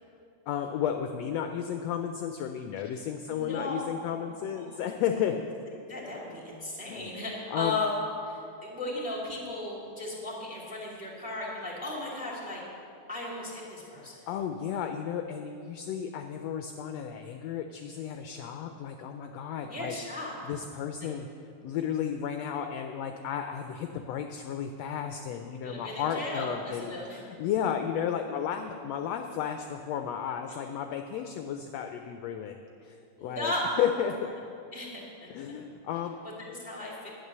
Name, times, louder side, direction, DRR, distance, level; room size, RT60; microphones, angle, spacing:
voice 1, 0.5-5.4 6.9-7.1 7.5-7.8 14.0-19.9 20.4-21.3 21.6-33.0 33.2-33.5 33.8-34.2 35.3-36.2, left 9 dB, 80° left, 6 dB, 1.6 m, -33 dB
voice 2, 3.3-3.8 4.1-5.2 5.9-12.6 13.1-14.3 19.7-20.3 21.0-21.1 25.4-27.2 33.2-33.6 34.2-34.3 34.7-35.3 36.2-37.1, left 2 dB, 5° right, -4 dB, 2.0 m, -36 dB
11.0 x 8.9 x 6.7 m, 2.6 s
omnidirectional pair, 3.3 m